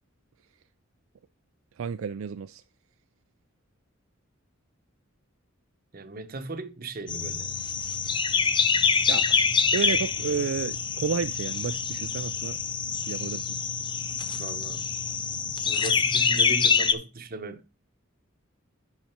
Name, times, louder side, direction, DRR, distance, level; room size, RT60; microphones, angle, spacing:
voice 1, 1.8-2.6 9.1-9.4 9.7-12.6 13.1-13.5, right 6 dB, 75° right, 0.4 m, -31 dB
voice 2, 5.9-7.5 14.4-14.8 15.5-17.7, right 3 dB, 45° right, 0.9 m, -37 dB
sound 1, 7.1-16.9, left 5 dB, 25° left, 0.6 m, -26 dB
10.5 x 4.2 x 4.5 m
head